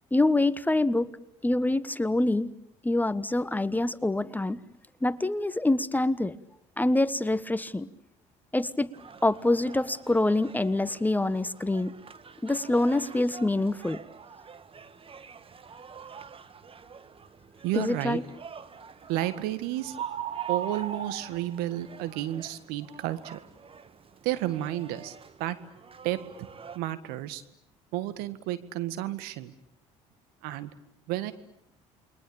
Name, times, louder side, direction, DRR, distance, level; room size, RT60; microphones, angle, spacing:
voice 1, 0.1-1.1 1.4-2.5 2.8-4.6 5.0-6.4 6.8-7.9 8.5-8.9 9.2-11.9 12.4-14.0 17.7-18.2, left 2 dB, 10° left, 16 dB, 1.3 m, -25 dB
sound 1, 8.9-26.8, right 6 dB, 35° right, 1.7 m, -49 dB
voice 2, 17.6-18.2 19.1-19.9 20.5-23.4 24.2-25.6 26.0-26.5 26.8-27.4 27.9-29.5 30.4-30.7 31.1-31.3, right 14 dB, 75° right, 13 dB, 1.8 m, -31 dB
sound 2, 19.2-19.5 19.9-22.0, right 9 dB, 55° right, 2.3 m, -35 dB
29.0 x 22.5 x 8.8 m, 0.75 s
hypercardioid pair, 65°, 16 cm